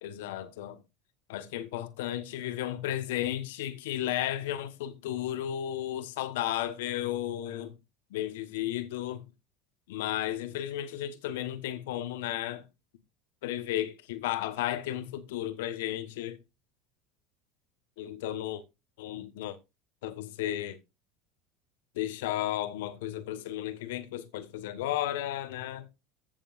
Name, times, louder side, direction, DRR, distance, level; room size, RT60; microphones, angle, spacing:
voice 1, 0.0-0.8 1.3-7.7 8.1-9.2 9.9-12.6 13.4-16.4 18.0-18.6 19.0-19.6 20.0-20.8 21.9-25.9, left 12 dB, 75° left, 1.3 m, -34 dB
14.5 x 7.1 x 2.6 m
hypercardioid pair, 80°, 0 cm